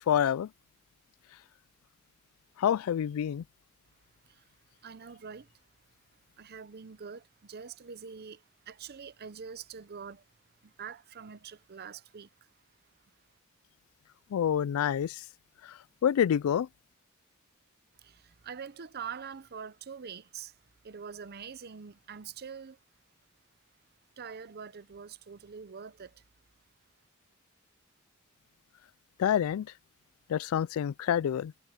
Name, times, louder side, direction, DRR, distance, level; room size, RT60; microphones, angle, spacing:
voice 1, 0.1-0.5 2.6-3.4 14.3-15.2 15.6-16.7 29.2-29.7 30.3-31.5, left 9 dB, 80° left, 0.3 m, -27 dB
voice 2, 4.8-5.5 6.4-10.2 10.6-12.3 18.0-20.5 20.8-22.8 24.2-26.2, right 6 dB, 50° right, 0.7 m, -44 dB
head